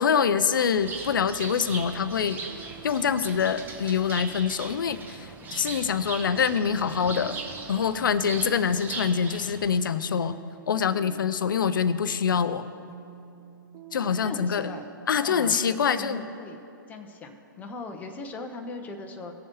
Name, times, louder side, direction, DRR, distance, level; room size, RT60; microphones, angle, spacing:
voice 1, 0.0-2.4 2.8-7.4 7.7-10.4 10.7-12.7 13.9-14.7 15.1-16.2, left 7 dB, 65° left, 13 dB, 0.7 m, -25 dB
Bird, 0.8-9.8, right 3 dB, 15° right, 1.1 m, -39 dB
sound 1, 1.7-17.3, right 8 dB, 30° right, 0.8 m, -49 dB
voice 2, 8.2-8.5 14.2-14.9 15.2-16.6 16.9-19.3, left 3 dB, 15° left, 3 dB, 0.9 m, -39 dB
18.5 x 7.2 x 3.1 m, 2.8 s
hypercardioid pair, 130°, 11 cm